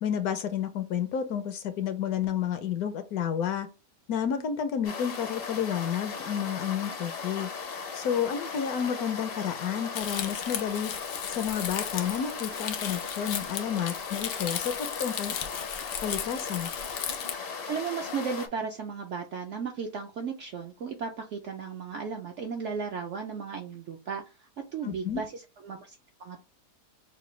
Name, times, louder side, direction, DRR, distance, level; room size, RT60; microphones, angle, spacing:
voice 1, 0.0-3.7 4.1-7.5 7.9-10.9 11.3-15.4 16.0-16.7 24.8-25.2, left 8 dB, 70° left, 9 dB, 1.0 m, -30 dB
sound 1, 4.8-18.5, left 5 dB, 55° left, 0.6 m, -37 dB
Crumpling crinkling, 9.9-17.4, left 9 dB, 90° left, 1.3 m, -36 dB
voice 2, 17.6-26.4, right 5 dB, 70° right, 3 dB, 0.7 m, -35 dB
5.7 x 2.2 x 3.1 m, 0.30 s
omnidirectional pair, 1.8 m